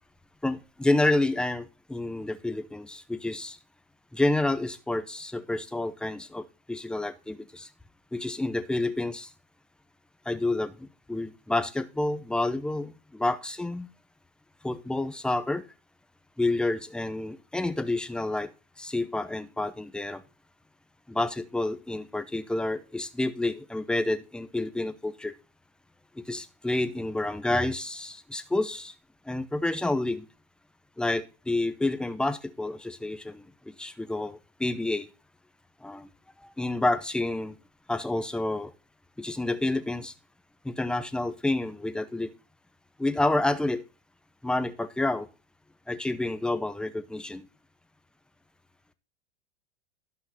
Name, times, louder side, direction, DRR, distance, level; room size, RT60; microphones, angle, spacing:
voice 1, 0.4-3.6 4.1-7.7 8.1-9.3 10.3-10.7 11.1-13.9 14.6-15.6 16.4-18.5 18.8-20.2 21.1-25.3 26.2-28.9 29.3-30.3 31.0-33.4 33.8-35.1 35.8-36.1 36.6-37.5 37.9-38.7 39.2-40.1 40.6-42.3 43.0-43.8 44.4-45.3 45.9-47.4, left 2 dB, 5° left, 11 dB, 0.7 m, -29 dB
12.0 x 5.8 x 4.2 m, 0.31 s
hypercardioid pair, 130°, 34 cm